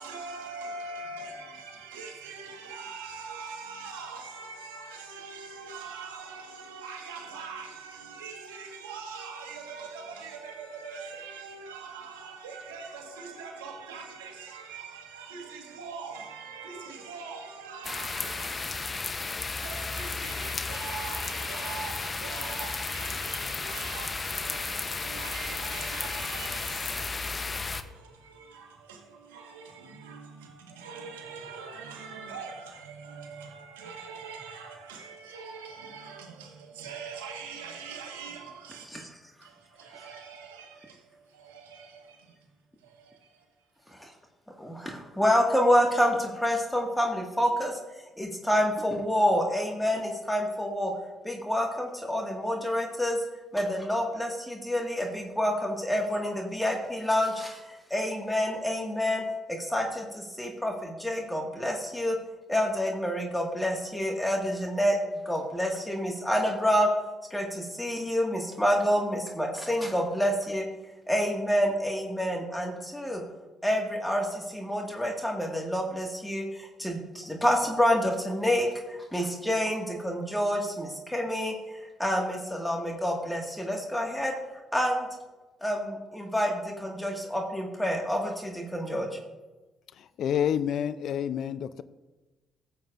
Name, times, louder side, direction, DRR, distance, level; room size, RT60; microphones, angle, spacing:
voice 1, 0.0-39.1 39.4-42.4 42.8-43.4, right 5 dB, 90° right, 1.4 m, -42 dB
sound 1, 17.8-27.8, left 4 dB, 35° left, 0.7 m, -33 dB
voice 2, 44.6-47.8 48.2-50.9 51.2-53.2 53.5-59.2 59.5-62.1 62.5-65.0 65.2-66.9 67.3-70.6 71.1-73.2 73.6-81.5 82.0-84.3 84.7-85.1 85.6-89.1, equal, 5° left, 1.7 m, -28 dB
voice 3, 90.2-91.8, left 9 dB, 65° left, 0.4 m, -28 dB
15.0 x 7.6 x 2.5 m
hypercardioid pair, 50°, 0 cm